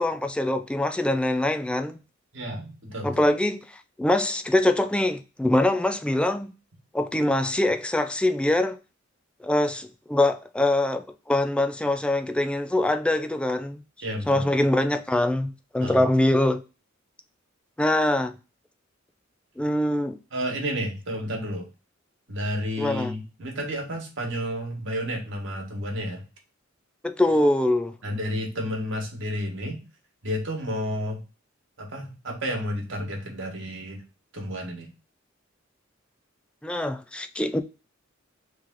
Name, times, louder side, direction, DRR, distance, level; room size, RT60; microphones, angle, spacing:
voice 1, 0.0-2.0 3.0-3.6 4.0-6.5 6.9-8.8 9.4-13.8 14.3-16.6 17.8-18.4 19.6-20.2 22.8-23.1 27.0-27.9 36.6-37.6, left 1 dB, 5° left, 0.3 m, -23 dB
voice 2, 2.3-3.3 14.0-14.5 15.8-16.0 20.3-21.7 22.3-26.2 28.0-29.8 30.2-31.2 31.8-34.0 34.3-34.9, equal, 65° right, 1.3 m, -31 dB
3.4 x 3.2 x 3.6 m
head